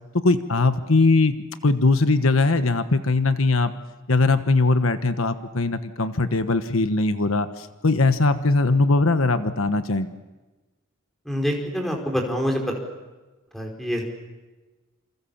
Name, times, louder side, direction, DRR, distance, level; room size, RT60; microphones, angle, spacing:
voice 1, 0.2-1.4 1.6-3.7 4.1-10.1, left 3 dB, 80° left, 10 dB, 1.2 m, -20 dB
voice 2, 11.2-12.8 13.5-14.0, equal, ahead, 0 dB, 4.9 m, -26 dB
28.0 x 27.0 x 7.3 m, 1.2 s
head